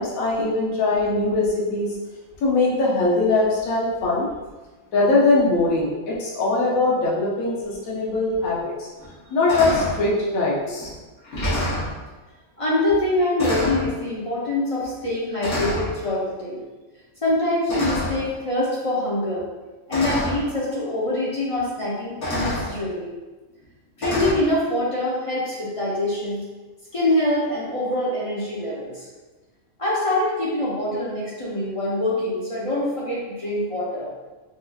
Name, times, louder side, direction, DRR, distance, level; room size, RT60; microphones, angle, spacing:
voice 1, 0.0-2.0 2.4-4.3 4.9-8.9 9.3-10.9, left 2 dB, 75° left, -5 dB, 1.2 m, -21 dB
sound 1, 8.4-8.5 9.0-9.2 9.5-10.0 10.8-10.9 11.2-11.9 12.9-13.1 13.4-13.9 14.8-15.0 15.4-15.9 17.7-18.3 19.4-19.5 19.9-20.4 21.6-21.7 22.2-22.7 24.0-24.3, left 1 dB, 55° left, 1.4 m, -26 dB
voice 2, 12.6-16.6 17.2-19.4 19.9-23.1 24.0-26.4 26.9-29.1 29.8-34.1, left 1 dB, 35° left, -7 dB, 0.6 m, -24 dB
4.6 x 2.7 x 2.4 m, 1.2 s
omnidirectional pair, 1.5 m